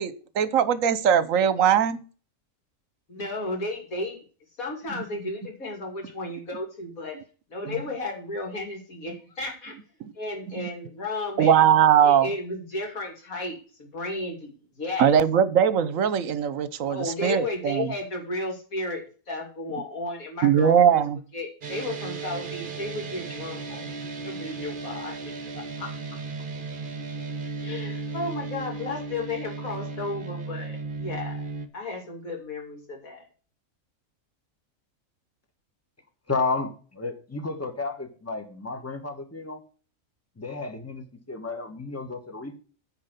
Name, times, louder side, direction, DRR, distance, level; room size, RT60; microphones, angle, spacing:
voice 1, 0.0-2.0 7.7-7.8 10.6-10.7 11.4-12.3 15.0-17.9 20.4-21.2, right 8 dB, 70° right, 15 dB, 1.1 m, -20 dB
voice 2, 3.1-4.2 4.6-7.2 7.5-9.8 10.1-11.6 12.0-15.1 16.9-21.0 21.3-23.8 24.2-25.9 27.6-31.4 31.7-33.3, left 2 dB, 80° left, 2 dB, 3.1 m, -34 dB
sound 1, 21.6-31.7, right 4 dB, 40° right, 1.2 m, -35 dB
voice 3, 36.3-39.6 40.4-42.6, left 3 dB, 10° left, 6 dB, 1.3 m, -32 dB
9.7 x 4.6 x 6.6 m, 0.38 s
omnidirectional pair, 1.4 m